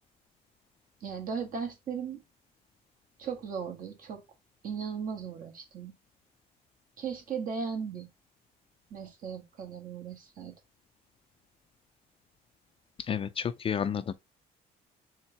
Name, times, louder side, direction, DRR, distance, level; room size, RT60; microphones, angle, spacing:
voice 1, 1.0-2.2 3.2-4.2 4.6-5.9 7.0-8.1 8.9-10.5, right 6 dB, 55° right, 1.6 m, -37 dB
voice 2, 13.1-14.1, left 7 dB, 35° left, 0.4 m, -31 dB
4.4 x 3.8 x 2.8 m
cardioid pair, 110°, 17 cm